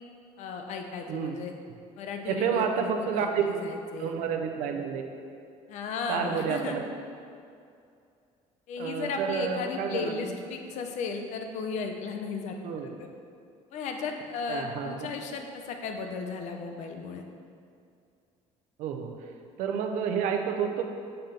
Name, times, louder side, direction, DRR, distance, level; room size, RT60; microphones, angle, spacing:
voice 1, 0.4-1.5 1.9-4.1 5.7-6.8 8.7-12.5 13.0-13.1 13.7-17.2, left 5 dB, 65° left, 4 dB, 0.6 m, -35 dB
voice 2, 2.3-3.4 4.0-5.0 6.1-6.8 8.8-10.3 12.6-13.0 14.5-15.1 18.8-19.3 19.6-20.8, right 7 dB, 85° right, 4 dB, 0.6 m, -30 dB
6.6 x 4.2 x 3.9 m, 2.4 s
cardioid pair, 145°, 13 cm